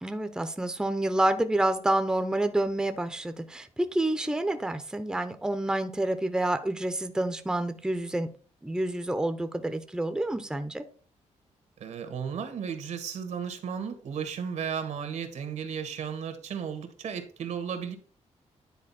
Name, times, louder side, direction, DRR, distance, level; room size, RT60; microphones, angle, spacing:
voice 1, 0.0-8.3 8.6-10.8, right 1 dB, 5° right, 8 dB, 0.7 m, -28 dB
voice 2, 11.8-18.0, right 7 dB, 75° right, 8 dB, 1.6 m, -34 dB
10.0 x 4.1 x 4.2 m, 0.43 s
cardioid pair, 125°, 12 cm